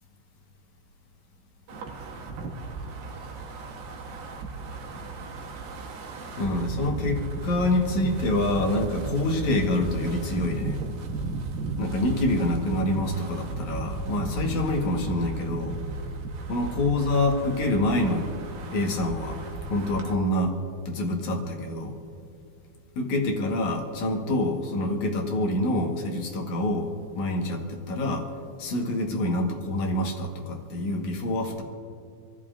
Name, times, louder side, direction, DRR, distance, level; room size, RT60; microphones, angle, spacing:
Wind, 1.7-20.1, right 3 dB, 65° right, 2.5 m, -35 dB
voice 1, 6.4-10.8 11.8-15.8 16.5-18.3 18.7-19.4 19.7-20.6 20.9-21.9 23.0-28.3 28.6-31.6, left 1 dB, 60° left, 1 dB, 2.2 m, -26 dB
27.0 x 14.0 x 2.5 m, 2.3 s
omnidirectional pair, 4.9 m